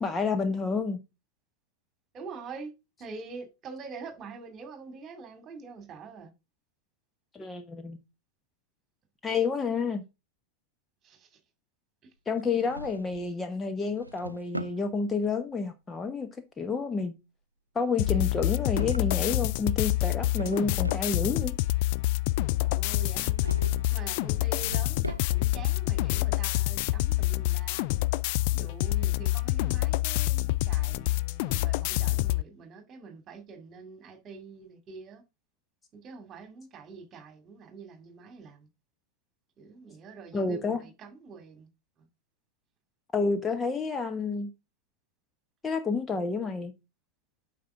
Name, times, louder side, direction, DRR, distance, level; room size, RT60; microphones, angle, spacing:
voice 1, 0.0-1.0 7.3-8.0 9.2-10.0 12.3-16.3 16.6-17.1 17.7-21.5 40.3-40.8 43.1-44.5 45.6-46.7, left 4 dB, 15° left, 0.9 m, -29 dB
voice 2, 2.1-2.7 3.0-6.3 11.0-11.4 22.6-23.6 23.9-27.9 28.5-35.2 36.0-38.7 39.6-41.7 42.0-42.1, right 4 dB, 30° right, 2.3 m, -45 dB
Drawer open or close, 12.4-13.4 13.8-14.8 18.5-19.6 20.0-21.1 23.3-24.0 24.3-25.6, right 2 dB, 85° right, 0.4 m, -40 dB
sound 1, 18.0-32.4, left 18 dB, 45° left, 0.3 m, -27 dB
8.6 x 5.8 x 3.6 m
figure-of-eight pair, 90°, 0 cm